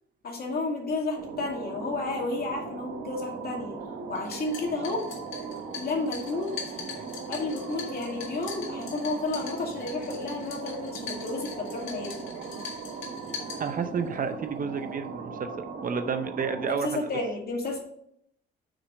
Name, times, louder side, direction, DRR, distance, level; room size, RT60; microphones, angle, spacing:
voice 1, 0.2-3.8 4.1-5.1 5.8-6.5 7.3-12.3 16.7-17.8, left 2 dB, 50° left, 0 dB, 2.5 m, -31 dB
sound 1, 1.2-16.7, right 5 dB, 85° right, 1.2 m, -39 dB
sound 2, 4.2-14.1, left 6 dB, 85° left, 1.9 m, -42 dB
voice 2, 13.6-15.5 15.8-17.1, right 6 dB, 45° right, 9 dB, 0.7 m, -30 dB
6.1 x 4.9 x 6.4 m, 0.71 s
cardioid pair, 90°, 20 cm